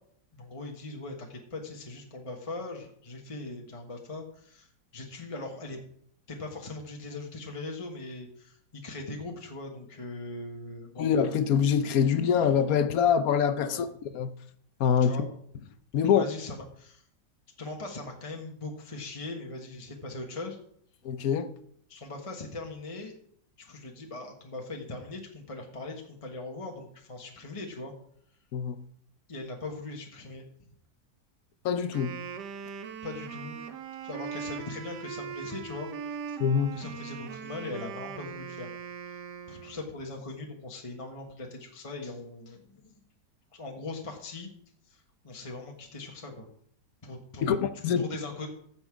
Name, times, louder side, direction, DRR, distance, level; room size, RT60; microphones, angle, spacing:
voice 1, 0.3-5.8 6.3-11.1 13.6-13.8 15.0-15.3 16.0-17.0 17.6-20.6 21.9-23.1 23.6-27.9 29.3-30.4 33.0-33.6 34.0-36.4 36.7-38.7 39.1-39.2 39.5-43.0 43.5-44.5 44.8-46.5 47.0-47.6 48.0-48.5, left 2 dB, 20° left, 1.1 m, -40 dB
voice 2, 11.0-13.9 14.1-14.3 14.8-15.1 15.9-16.2 21.0-21.5 28.5-28.8 31.6-32.1 36.4-36.8 47.4-48.0, left 7 dB, 65° left, 1.0 m, -24 dB
Wind instrument woodwind instrument, 31.8-39.9, right 7 dB, 70° right, 1.4 m, -40 dB
15.0 x 6.1 x 4.8 m
omnidirectional pair, 2.0 m